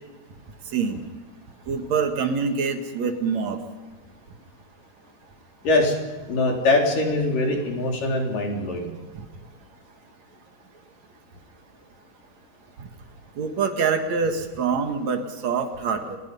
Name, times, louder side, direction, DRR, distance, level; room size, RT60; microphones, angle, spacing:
voice 1, 0.7-1.1 1.7-3.6 13.4-16.2, right 5 dB, 55° right, 6 dB, 2.7 m, -25 dB
voice 2, 6.3-8.9, left 2 dB, 65° left, 1 dB, 5.3 m, -22 dB
29.5 x 20.0 x 5.5 m, 1.3 s
omnidirectional pair, 4.2 m